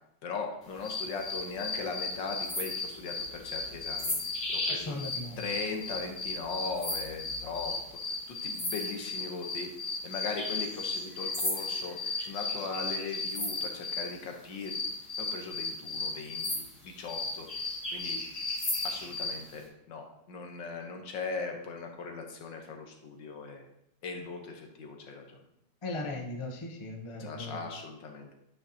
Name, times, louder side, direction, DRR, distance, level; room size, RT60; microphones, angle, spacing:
voice 1, 0.2-4.2 4.5-5.0 5.4-7.7 8.3-9.7 10.0-14.7 15.2-17.5 17.9-18.2 18.8-23.7 24.0-25.4 27.2-28.3, left 4 dB, 70° left, 3 dB, 1.8 m, -39 dB
sound 1, 0.8-14.1 14.6-19.4, left 2 dB, 55° left, 3.4 m, -35 dB
voice 2, 4.7-5.4 25.8-27.6, left 2 dB, 30° left, 1 dB, 0.5 m, -38 dB
9.1 x 6.3 x 2.9 m, 0.77 s
omnidirectional pair, 2.1 m